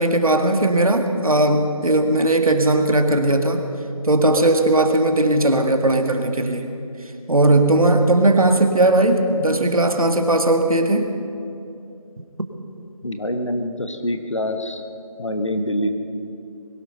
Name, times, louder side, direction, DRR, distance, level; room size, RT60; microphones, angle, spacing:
voice 1, 0.0-3.6 4.0-6.7 7.3-11.1, right 2 dB, 70° right, 6 dB, 1.7 m, -18 dB
voice 2, 13.0-14.8 15.2-15.9, left 1 dB, 55° left, 7 dB, 1.5 m, -25 dB
22.0 x 12.0 x 5.5 m, 2.6 s
figure-of-eight pair, 175°, 19 cm